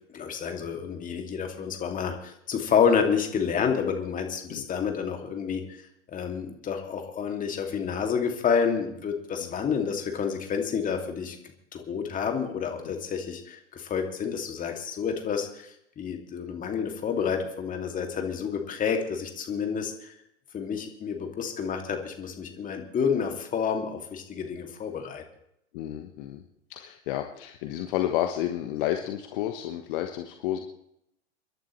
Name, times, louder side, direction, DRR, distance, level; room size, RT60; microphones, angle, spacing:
voice 1, 0.1-5.6 6.1-11.4 11.7-20.1 20.5-25.2, left 6 dB, 20° left, 4 dB, 2.5 m, -29 dB
voice 2, 25.7-26.4 26.7-30.6, left 12 dB, 45° left, 5 dB, 1.3 m, -31 dB
30.0 x 11.5 x 3.2 m, 0.77 s
figure-of-eight pair, 100°, 37 cm